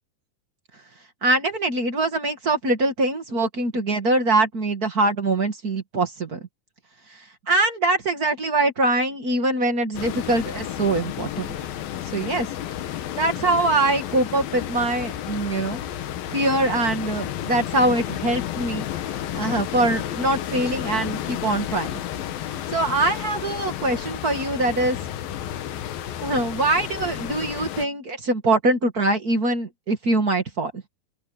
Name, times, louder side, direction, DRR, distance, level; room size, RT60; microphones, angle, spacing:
voice 1, 1.2-6.4 7.5-11.5 12.1-12.5 13.1-15.8 16.3-18.8 19.3-21.9 22.7-25.0 26.2-30.8, right 2 dB, 35° right, 1.8 m, -23 dB
sound 1, 9.9-27.9, left 11 dB, 85° left, 3.1 m, -32 dB
omnidirectional pair, 4.1 m